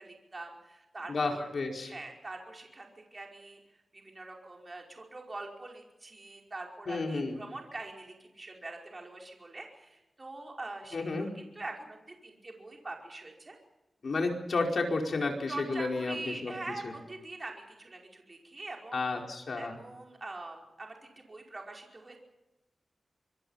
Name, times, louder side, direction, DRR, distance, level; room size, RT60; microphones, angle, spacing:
voice 1, 0.0-1.5 1.8-3.6 3.9-13.6 15.5-19.0 19.6-22.2, right 2 dB, 30° right, 1 dB, 5.1 m, -44 dB
voice 2, 1.1-1.9 6.9-7.4 10.9-11.3 14.0-16.5 16.8-16.9 18.9-19.8, left 3 dB, 60° left, 2 dB, 4.9 m, -31 dB
26.0 x 22.5 x 5.8 m, 0.96 s
wide cardioid pair, 120°, 0 cm